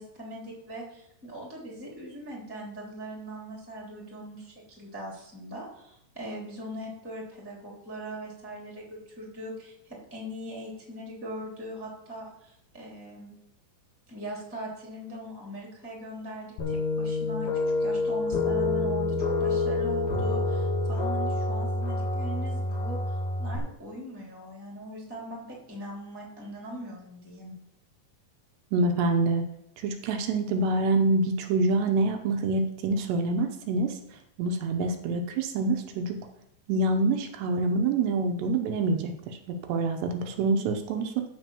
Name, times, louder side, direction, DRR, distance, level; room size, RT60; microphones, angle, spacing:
voice 1, 0.0-13.3 14.1-17.5 17.8-23.0 23.4-27.5, equal, 5° right, -2 dB, 2.4 m, -40 dB
sound 1, 16.6-23.6, left 2 dB, 65° left, 3.4 m, -27 dB
voice 2, 28.7-29.4 29.8-33.9 34.4-36.2 36.7-41.3, right 3 dB, 75° right, 5 dB, 3.0 m, -26 dB
12.5 x 5.2 x 7.1 m, 0.77 s
omnidirectional pair, 5.2 m